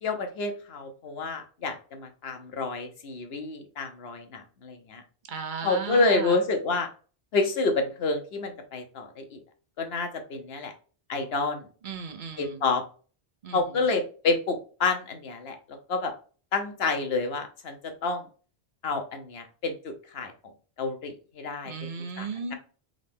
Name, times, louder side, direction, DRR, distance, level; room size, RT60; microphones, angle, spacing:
voice 1, 0.0-5.0 5.6-6.9 7.3-9.4 9.8-10.7 11.1-11.7 12.4-12.8 13.5-16.1 16.5-18.2 18.8-20.3 20.8-21.7 22.2-22.5, left 3 dB, 75° left, 5 dB, 1.1 m, -29 dB
voice 2, 5.3-6.4 11.8-12.6 13.4-13.6 21.7-22.5, right 5 dB, 50° right, 6 dB, 0.9 m, -35 dB
3.8 x 3.2 x 3.4 m, 0.39 s
omnidirectional pair, 1.1 m